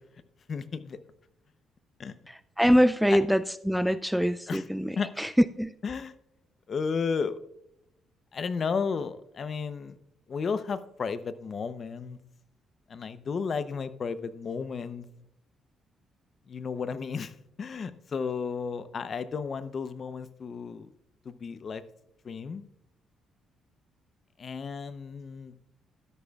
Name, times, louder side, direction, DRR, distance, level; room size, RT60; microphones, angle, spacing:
voice 1, 0.5-1.0 2.0-2.1 3.1-3.2 4.5-4.7 5.0-5.1 5.8-6.1 6.7-7.4 8.3-10.0 10.3-12.2 12.9-15.1 16.5-20.9 21.2-21.8 22.2-22.7 24.4-25.5, left 5 dB, 45° left, 13 dB, 0.7 m, -33 dB
voice 2, 2.3-5.3 5.6-5.7, equal, ahead, 14 dB, 0.3 m, -24 dB
12.5 x 11.0 x 2.3 m, 0.83 s
cardioid pair, 90°, 0 cm